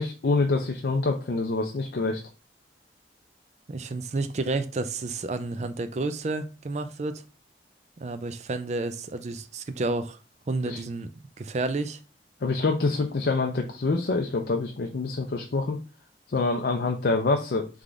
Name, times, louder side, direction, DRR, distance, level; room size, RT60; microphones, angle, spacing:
voice 1, 0.0-2.2 10.7-10.8 12.4-15.8 16.3-17.7, left 3 dB, 60° left, 0.5 m, -26 dB
voice 2, 3.7-7.2 8.0-10.2 10.5-11.1 11.4-12.0, right 3 dB, 40° right, 0.4 m, -30 dB
3.5 x 3.4 x 3.7 m
head